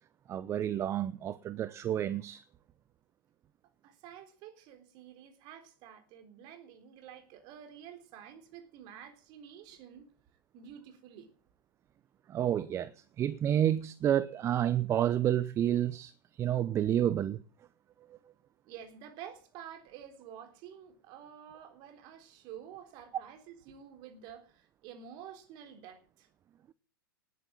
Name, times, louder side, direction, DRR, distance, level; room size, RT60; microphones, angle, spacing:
voice 1, 0.3-2.4 12.3-12.9 13.2-17.4, right 11 dB, 25° right, 0.8 m, -29 dB
voice 2, 3.8-10.1 10.5-11.3 18.7-26.3, right 9 dB, 40° right, 3.8 m, -50 dB
19.5 x 9.6 x 7.7 m
figure-of-eight pair, 105°, 12 cm